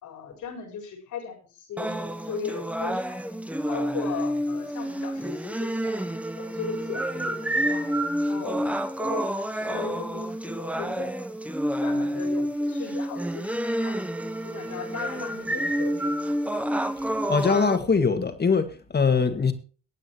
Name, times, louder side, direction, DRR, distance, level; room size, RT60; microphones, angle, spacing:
voice 1, 0.0-3.2 3.7-6.0 6.4-11.2 11.8-14.0 14.4-16.1, left 5 dB, 80° left, 4.6 m, -38 dB
sound 1, 1.8-17.8, equal, 5° right, 1.1 m, -29 dB
voice 2, 17.3-19.5, left 5 dB, 35° left, 1.9 m, -22 dB
23.0 x 8.9 x 3.0 m
cardioid pair, 90°, 30 cm